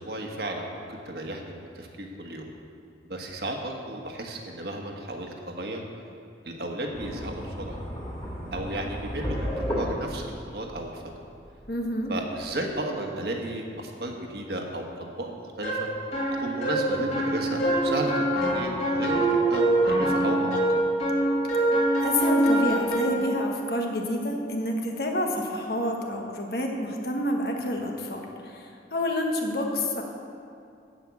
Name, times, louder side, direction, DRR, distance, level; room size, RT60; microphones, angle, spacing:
voice 1, 0.0-2.5 3.0-5.9 6.4-7.8 8.5-11.0 12.1-15.9 16.3-20.6, right 1 dB, 60° right, 1 dB, 1.4 m, -34 dB
sound 1, 6.9-12.6, equal, 20° left, 2.8 m, -34 dB
voice 2, 11.7-12.1 22.0-30.0, left 1 dB, 55° left, 1 dB, 1.4 m, -28 dB
sound 2, 15.6-23.3, right 1 dB, 40° left, 3.0 m, -24 dB
13.5 x 5.5 x 8.5 m, 2.5 s
head